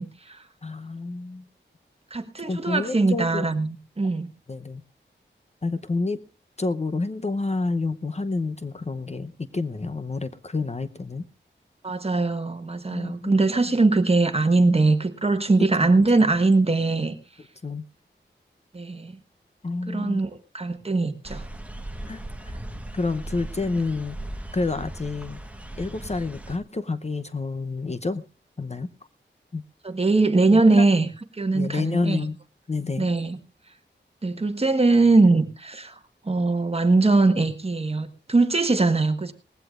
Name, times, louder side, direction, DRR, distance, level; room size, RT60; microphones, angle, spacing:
voice 1, 0.0-0.4 2.1-4.3 11.8-17.2 18.7-19.2 19.9-20.3 20.5-21.4 29.8-31.1 31.3-32.3 33.0-33.4 34.2-36.0 36.2-39.3, right 3 dB, 30° right, 1.5 m, -21 dB
voice 2, 0.6-1.5 2.4-3.5 4.5-4.8 5.6-6.2 6.6-11.2 12.9-13.3 13.6-13.7 15.8-15.9 17.6-17.8 19.6-20.2 22.1-22.6 22.9-24.2 24.5-25.4 25.8-28.2 28.6-28.9 29.5-29.6 30.5-30.9 31.5-32.4 32.7-33.1, left 3 dB, 35° left, 0.8 m, -29 dB
sound 1, 21.2-26.6, right 1 dB, 5° right, 1.3 m, -37 dB
19.5 x 16.0 x 2.5 m
wide cardioid pair, 95°, 19 cm